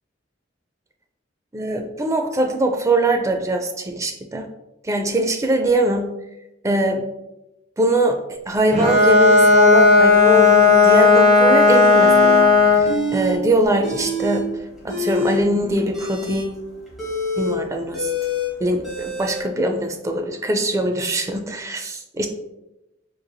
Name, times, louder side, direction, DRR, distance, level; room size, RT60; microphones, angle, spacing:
voice 1, 1.5-4.5 4.8-6.1 6.6-7.1 7.8-8.2 8.5-14.5 14.8-16.6 17.4-18.1 18.6-22.3, right 1 dB, 15° right, 4 dB, 0.3 m, -22 dB
Bowed string instrument, 8.7-13.0, left 3 dB, 40° right, 0.8 m, -13 dB
sound 1, 11.9-12.4 12.8-13.4 13.6-14.4 14.8-19.4, left 1 dB, ahead, 1.3 m, -27 dB
4.0 x 3.1 x 2.2 m, 0.94 s
head